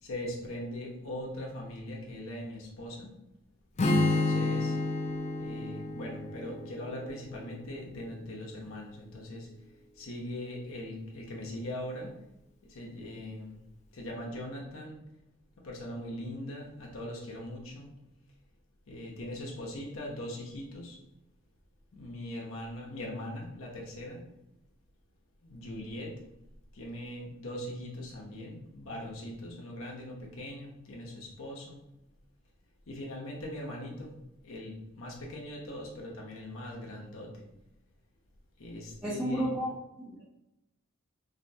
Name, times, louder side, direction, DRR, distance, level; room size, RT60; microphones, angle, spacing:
voice 1, 0.0-3.1 3.9-4.8 5.4-9.5 9.9-12.2 12.6-13.6 13.9-15.0 15.6-17.9 18.9-21.0 21.9-24.2 25.4-26.2 26.7-31.8 32.9-34.1 34.4-37.5 38.6-39.5, left 1 dB, 80° left, -3 dB, 0.8 m, -41 dB
Strum, 3.8-7.9, left 2 dB, 35° left, 0.4 m, -30 dB
voice 2, 39.0-40.2, equal, 10° right, -7 dB, 0.6 m, -33 dB
4.2 x 2.7 x 2.7 m, 0.87 s
head